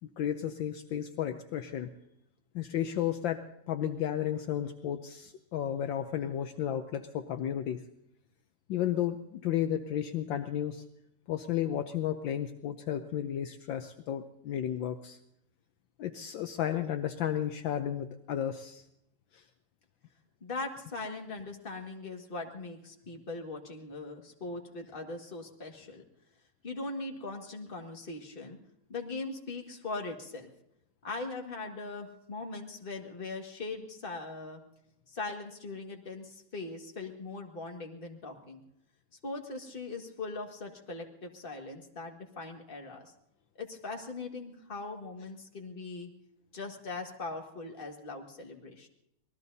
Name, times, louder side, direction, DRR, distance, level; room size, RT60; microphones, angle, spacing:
voice 1, 0.0-1.9 2.5-7.8 8.7-10.8 11.3-15.2 16.0-18.8 19.3-19.4, left 10 dB, 70° left, 8 dB, 1.4 m, -33 dB
voice 2, 20.4-26.0 26.6-28.6 28.9-30.5 31.0-34.6 35.1-38.6 39.2-43.1 43.6-46.1 46.5-48.9, left 3 dB, 25° left, 2 dB, 1.9 m, -40 dB
26.5 x 19.5 x 2.7 m, 0.82 s
omnidirectional pair, 2.2 m